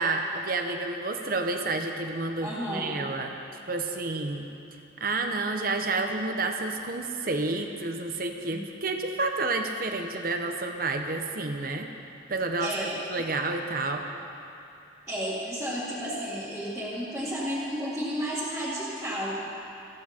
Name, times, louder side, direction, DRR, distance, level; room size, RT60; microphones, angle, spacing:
voice 1, 0.0-3.3 3.7-4.5 5.0-11.9 12.3-14.1, right 3 dB, 50° right, 4 dB, 1.0 m, -30 dB
voice 2, 2.4-3.0 8.5-8.7 12.6-13.1 15.1-19.3, equal, 5° right, -12 dB, 2.3 m, -32 dB
18.5 x 14.5 x 4.5 m, 2.7 s
head